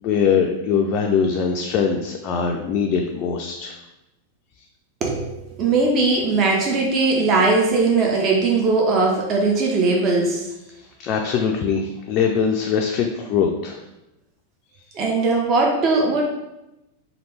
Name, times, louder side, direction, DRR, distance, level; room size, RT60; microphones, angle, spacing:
voice 1, 0.0-3.8 11.0-13.8, left 6 dB, 35° left, 2 dB, 0.3 m, -22 dB
voice 2, 5.0-10.4 14.9-16.2, right 3 dB, 35° right, -1 dB, 0.6 m, -19 dB
3.2 x 2.4 x 3.2 m, 0.93 s
figure-of-eight pair, 90°, 0 cm